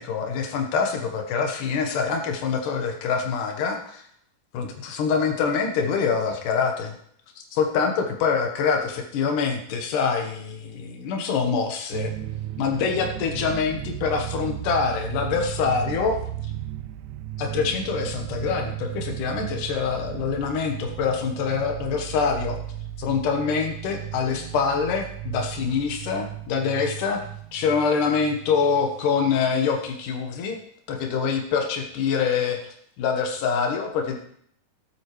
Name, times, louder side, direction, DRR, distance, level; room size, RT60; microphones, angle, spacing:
voice 1, 0.0-4.0 4.5-6.9 7.5-12.1 12.6-16.2 17.4-22.6 23.0-27.2 27.5-30.6 30.9-34.2, left 5 dB, 80° left, 3 dB, 2.9 m, -25 dB
sound 1, 11.9-30.0, right 13 dB, 80° right, 1.9 m, -35 dB
20.0 x 7.9 x 3.2 m, 0.66 s
omnidirectional pair, 3.7 m